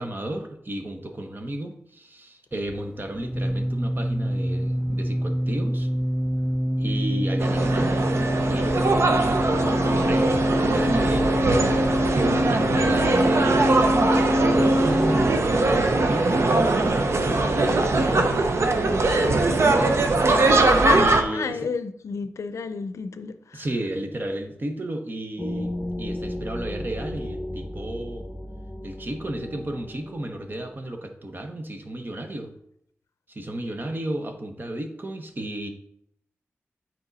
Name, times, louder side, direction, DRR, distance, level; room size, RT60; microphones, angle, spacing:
voice 1, 0.0-5.9 6.8-8.1 8.5-11.4 12.5-19.0 19.4-19.9 20.9-21.6 23.5-28.3 28.8-32.5 33.3-35.7, right 1 dB, 40° right, 1.1 m, -33 dB
sound 1, 2.5-15.4, equal, 5° right, 0.4 m, -25 dB
sound 2, 7.4-21.2, right 2 dB, 65° right, 0.8 m, -21 dB
voice 2, 12.9-13.5 21.3-23.7, left 5 dB, 90° left, 0.5 m, -32 dB
sound 3, 25.4-30.8, left 1 dB, 15° left, 1.0 m, -34 dB
8.9 x 4.5 x 4.1 m
wide cardioid pair, 70°, 5 cm